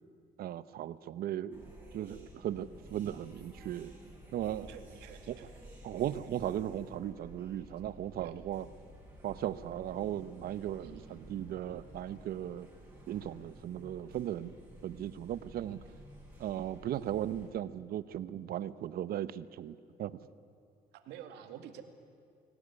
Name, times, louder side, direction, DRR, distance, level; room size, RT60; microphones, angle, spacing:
voice 1, 0.4-1.6 1.9-3.9 4.3-4.7 5.3-5.4 5.8-8.6 9.2-12.7 13.1-14.5 14.8-15.8 16.4-20.2, right 11 dB, 65° right, 16 dB, 0.9 m, -37 dB
sound 1, 1.5-17.5, right 1 dB, 10° right, 6.8 m, -53 dB
voice 2, 4.6-5.5 8.2-8.4 10.8-11.1 15.6-15.8 21.0-21.8, right 10 dB, 85° right, 7 dB, 2.2 m, -49 dB
24.0 x 17.5 x 9.8 m, 2.4 s
cardioid pair, 110°, 17 cm